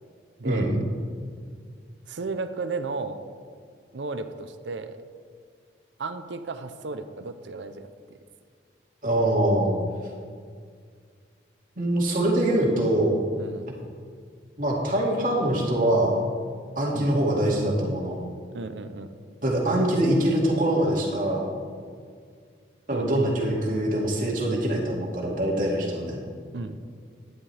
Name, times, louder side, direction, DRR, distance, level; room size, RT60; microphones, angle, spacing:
voice 1, 0.4-0.8 2.1-3.2 3.9-5.0 6.0-7.8 13.4-13.7 16.9-17.1 18.5-19.1 22.9-23.2 26.5-26.8, right 3 dB, 85° right, 9 dB, 0.7 m, -34 dB
voice 2, 9.0-9.7 11.8-13.2 14.6-16.2 16.8-18.2 19.4-21.5 22.9-26.2, right 1 dB, 50° right, -3 dB, 2.3 m, -23 dB
12.5 x 10.5 x 3.4 m, 2.1 s
head